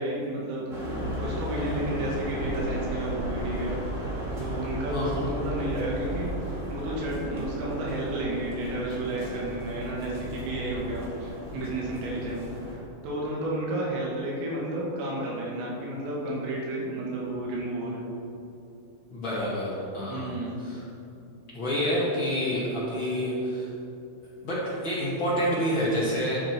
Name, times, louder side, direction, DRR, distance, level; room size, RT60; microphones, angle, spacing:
voice 1, 0.0-3.8 4.4-6.3 6.7-18.1 20.1-20.6, right 1 dB, 85° right, -4 dB, 4.8 m, -32 dB
sound 1, 0.7-12.8, equal, 50° right, 0.8 m, -34 dB
voice 2, 4.9-5.3 19.1-20.3 20.6-20.8 21.5-23.7 24.4-26.4, equal, 55° left, -8 dB, 1.3 m, -28 dB
11.0 x 10.0 x 4.6 m, 2.8 s
omnidirectional pair, 5.7 m